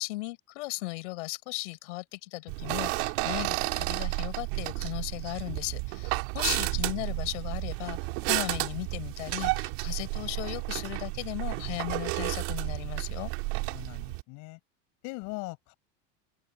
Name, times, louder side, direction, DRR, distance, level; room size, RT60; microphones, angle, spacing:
voice 1, 0.0-8.0 8.3-13.3, left 21 dB, 75° left, 7.1 m, -36 dB
sound 1, 2.5-14.2, right 26 dB, 55° right, 2.0 m, -32 dB
voice 2, 6.4-7.2 13.7-14.6 15.0-15.7, left 27 dB, 50° left, 6.0 m, -41 dB
open air
supercardioid pair, 165°, 37 cm